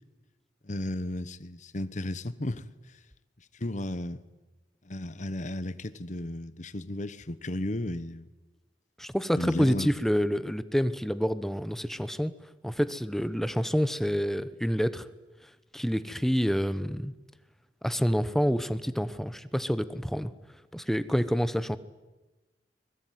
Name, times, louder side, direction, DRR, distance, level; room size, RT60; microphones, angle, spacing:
voice 1, 0.6-3.0 3.5-4.2 4.8-8.3 9.4-9.9, left 1 dB, 45° left, 1.1 m, -34 dB
voice 2, 9.0-12.3 12.6-15.1 15.7-17.1 17.8-20.3 20.7-21.8, equal, ahead, 1.0 m, -27 dB
24.0 x 20.5 x 9.4 m
head